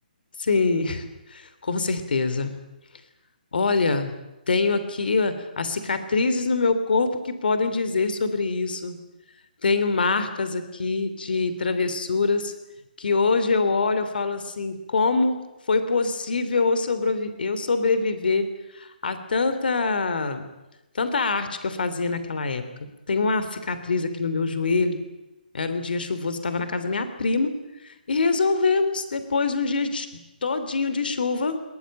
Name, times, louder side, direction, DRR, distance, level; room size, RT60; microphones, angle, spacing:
voice 1, 0.4-2.5 3.5-4.1 4.5-9.0 9.6-12.5 13.0-15.4 15.7-18.5 18.7-20.5 20.9-22.6 23.1-25.0 25.5-27.5 27.8-30.1 30.4-31.6, left 4 dB, 75° left, 10 dB, 3.0 m, -24 dB
21.5 x 21.0 x 8.9 m, 1.0 s
hypercardioid pair, 150°, 5 cm